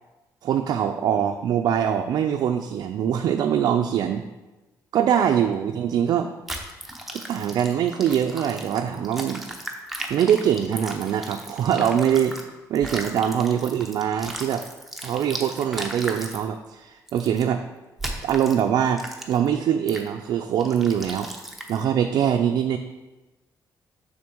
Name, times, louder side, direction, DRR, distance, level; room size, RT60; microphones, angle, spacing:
voice 1, 0.4-4.2 4.9-6.3 7.1-9.4 10.1-12.4 12.7-14.6 15.0-17.6 18.2-21.3 21.7-22.8, right 9 dB, 70° right, 4 dB, 0.4 m, -23 dB
sound 1, 6.5-12.4 12.7-16.4 17.1-17.4 18.0-18.6 19.0-19.5 19.9-20.1 20.6-21.8, right 1 dB, 5° right, 0.7 m, -36 dB
6.2 x 3.7 x 6.0 m, 1.1 s
cardioid pair, 140°, 7 cm